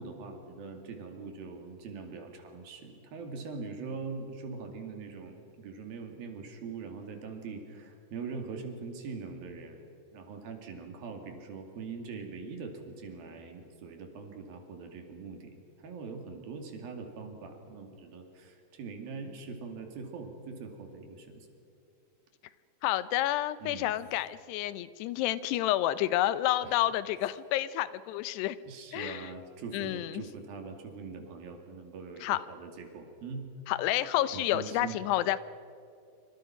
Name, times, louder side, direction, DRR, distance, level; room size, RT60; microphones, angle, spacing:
voice 1, 0.0-9.9 10.1-15.5 15.8-21.4 23.6-23.9 26.6-26.8 28.6-33.5 34.3-35.0, right 4 dB, 65° right, 4 dB, 4.2 m, -42 dB
voice 2, 22.8-28.6 28.9-29.3 29.7-30.2 32.2-32.4 33.7-35.4, left 14 dB, 90° left, 15 dB, 2.9 m, -29 dB
26.5 x 25.5 x 5.9 m, 2.6 s
omnidirectional pair, 4.7 m